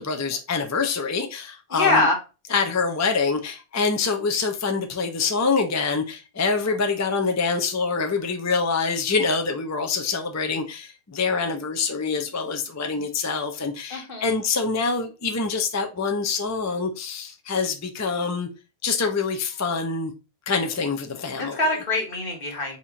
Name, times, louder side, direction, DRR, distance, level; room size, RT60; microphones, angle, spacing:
voice 1, 0.0-2.1 2.5-18.5 18.8-20.1 20.5-21.6, left 4 dB, 25° left, 0.4 m, -25 dB
voice 2, 1.7-2.1 13.9-14.3 21.4-22.8, left 2 dB, 55° left, 1.6 m, -23 dB
4.2 x 3.0 x 3.6 m
omnidirectional pair, 1.1 m